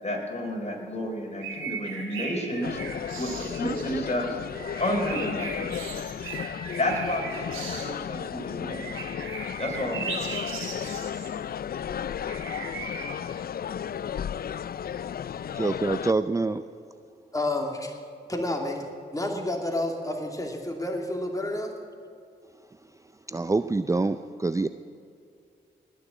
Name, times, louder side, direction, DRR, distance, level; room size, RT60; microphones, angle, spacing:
voice 1, 0.0-2.8 3.2-4.3 4.8-5.7 6.8-8.9 9.6-10.4, left 1 dB, 35° left, 0 dB, 4.7 m, -31 dB
sound 1, 1.4-3.9 4.5-7.9 8.7-11.3 12.2-13.0, right 4 dB, 85° right, 2.8 m, -37 dB
sound 2, 2.6-16.1, left 8 dB, 50° left, 0.4 m, -34 dB
voice 2, 15.5-16.6 23.3-24.7, right 3 dB, 15° right, 12 dB, 0.5 m, -26 dB
voice 3, 17.3-18.0 18.3-18.9 19.1-21.7, left 1 dB, 15° left, 1 dB, 2.6 m, -30 dB
19.5 x 6.9 x 8.6 m, 2.4 s
supercardioid pair, 40°, 20 cm